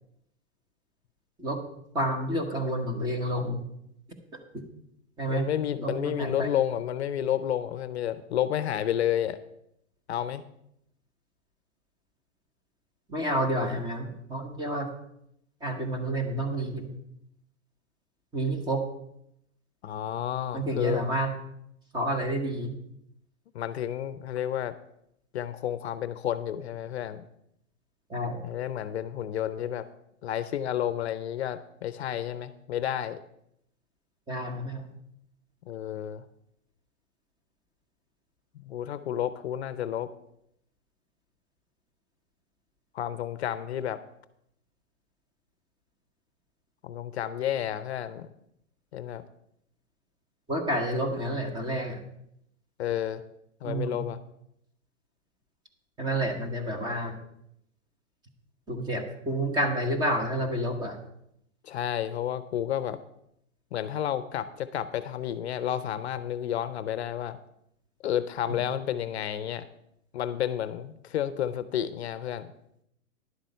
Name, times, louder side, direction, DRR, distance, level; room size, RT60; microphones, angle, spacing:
voice 1, 1.9-3.6 4.5-4.6 5.2-5.4 5.8-6.5 13.1-14.9 15.6-16.9 18.3-18.8 20.5-21.3 21.9-22.7 28.1-28.4 34.3-34.9 50.5-52.0 53.6-54.0 56.0-57.2 58.7-61.0 68.5-68.6, right 1 dB, 10° right, 7 dB, 1.0 m, -29 dB
voice 2, 5.3-9.4 10.1-10.4 19.8-21.0 23.5-24.7 25.3-27.2 28.4-29.9 30.2-33.2 35.7-36.2 38.5-40.1 42.9-44.0 46.8-48.3 48.9-49.2 52.8-53.2 53.6-54.2 61.6-63.0 63.7-67.4 68.0-69.6 70.1-72.5, left 10 dB, 55° left, 13 dB, 0.7 m, -31 dB
11.0 x 7.5 x 5.5 m, 0.76 s
hypercardioid pair, 150°, 41 cm